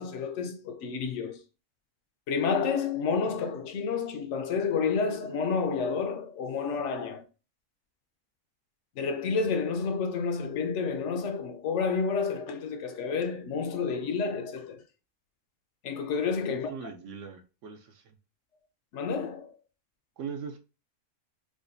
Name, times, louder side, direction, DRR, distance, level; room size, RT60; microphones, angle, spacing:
voice 1, 0.0-1.4 2.3-7.2 9.0-14.8 15.8-16.7 18.9-19.6, left 5 dB, 65° left, 0.8 m, -30 dB
voice 2, 16.4-18.2 20.2-20.6, right 6 dB, 65° right, 0.7 m, -40 dB
4.8 x 2.2 x 2.5 m
omnidirectional pair, 1.6 m